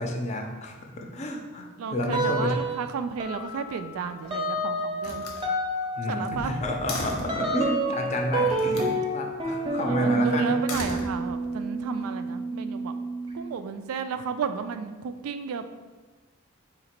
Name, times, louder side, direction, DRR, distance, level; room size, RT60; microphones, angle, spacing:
voice 1, 0.0-2.6 6.0-10.8, left 1 dB, 30° left, 2 dB, 0.5 m, -30 dB
voice 2, 1.8-5.3 6.1-6.5 9.6-12.9 13.3-15.7, right 6 dB, 80° right, 9 dB, 0.3 m, -33 dB
sound 1, 2.1-2.9 3.2-13.5, right 2 dB, 25° right, 0.6 m, -29 dB
Slam, 3.9-4.5 5.0-7.5 8.5-9.0 10.5-11.6, left 2 dB, 90° left, 0.8 m, -37 dB
3.9 x 2.9 x 4.3 m, 1.3 s
head